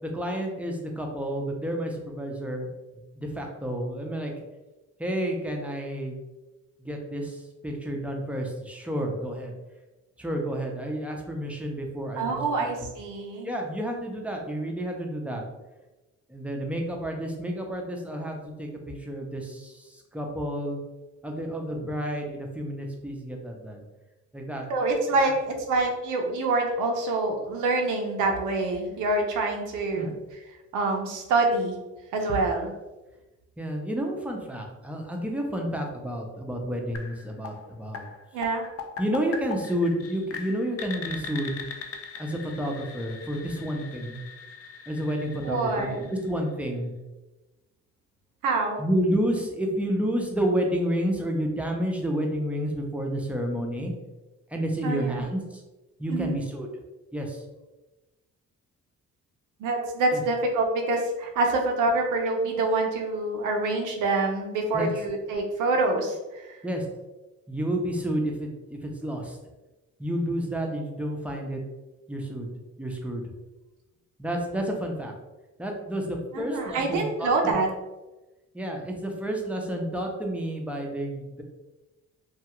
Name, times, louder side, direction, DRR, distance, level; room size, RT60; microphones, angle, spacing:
voice 1, 0.0-2.7 3.2-4.3 5.0-6.2 6.8-9.5 10.2-12.7 13.4-15.4 16.3-20.8 21.2-23.8 24.3-24.6 25.2-25.3 29.9-30.1 33.6-38.1 39.0-41.6 42.2-44.2 44.9-46.9 48.8-53.9 54.5-55.6 56.0-56.7 57.1-57.4 60.1-60.2 64.7-64.9 66.6-66.8 67.5-69.4 70.0-71.6 72.1-72.5 72.8-73.2 74.2-75.1 75.6-77.6 78.5-81.4, equal, 5° right, 1 dB, 0.5 m, -30 dB
voice 2, 12.2-13.5 21.7-21.8 24.7-30.1 30.7-31.8 32.1-32.7 38.3-38.7 45.4-46.1 48.4-48.8 54.8-55.2 56.1-56.4 59.6-66.2 66.5-66.6 76.3-77.7, right 2 dB, 85° right, 2 dB, 0.6 m, -26 dB
sound 1, 36.9-46.7, left 5 dB, 50° left, 0.4 m, -41 dB
2.3 x 2.3 x 2.9 m, 1.1 s
cardioid pair, 90°, 30 cm